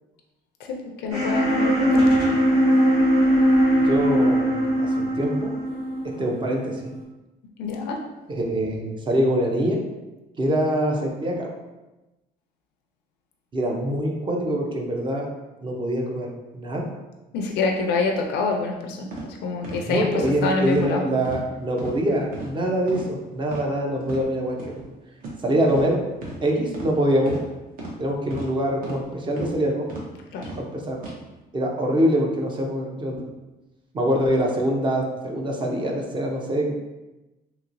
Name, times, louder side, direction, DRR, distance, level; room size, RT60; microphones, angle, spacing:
voice 1, 0.6-2.1 7.6-8.0 17.3-20.1 20.4-21.0 30.3-30.5, left 4 dB, 80° left, 2 dB, 0.4 m, -26 dB
sound 1, 1.1-7.0, equal, 85° right, 1.5 m, -20 dB
voice 2, 3.8-5.5 6.2-6.9 8.3-9.8 10.4-11.5 13.5-15.3 15.6-16.9 19.8-24.8 25.4-26.0 26.4-27.4 28.0-29.9 30.6-31.0 31.5-33.3 33.9-36.7, right 1 dB, 30° right, 0 dB, 0.6 m, -24 dB
sound 2, 19.1-19.3 19.6-19.8 20.2-20.4 20.7-20.9 21.2-21.5 21.8-21.9 22.3-22.5 22.9-23.1 23.4-23.6 24.0-24.2 24.6-24.7 25.2-25.4 25.7-25.9 26.2-26.4 26.7-26.9 27.3-27.4 27.8-27.9 28.3-28.5 28.8-29.0 29.4-29.5 29.9-30.0 30.4-30.6 31.0-31.1, right 1 dB, 55° right, 0.9 m, -35 dB
3.0 x 2.9 x 2.5 m, 1.1 s
cardioid pair, 110°, 17 cm